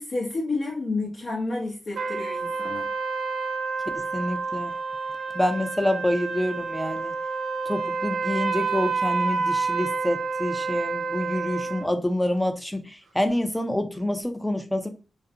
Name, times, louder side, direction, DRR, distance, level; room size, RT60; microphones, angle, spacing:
voice 1, 0.0-2.9, left 3 dB, 60° left, 0.7 m, -30 dB
sound 1, 2.0-11.9, right 4 dB, 80° right, 0.6 m, -29 dB
voice 2, 3.9-4.7 5.3-7.1 7.7-14.9, left 1 dB, 10° left, 0.5 m, -27 dB
2.5 x 2.1 x 2.7 m
cardioid pair, 65°, 0 cm